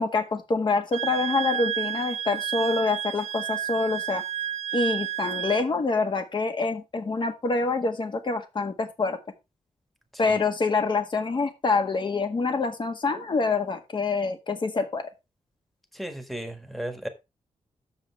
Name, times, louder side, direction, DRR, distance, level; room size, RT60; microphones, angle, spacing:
voice 1, 0.0-4.2 4.7-9.2 10.2-15.0, left 3 dB, 40° left, 1.7 m, -26 dB
Wind instrument woodwind instrument, 0.9-5.7, right 10 dB, 65° right, 0.4 m, -31 dB
voice 2, 15.9-17.1, right 1 dB, ahead, 1.5 m, -34 dB
7.8 x 7.1 x 4.5 m
wide cardioid pair, 155°, 12 cm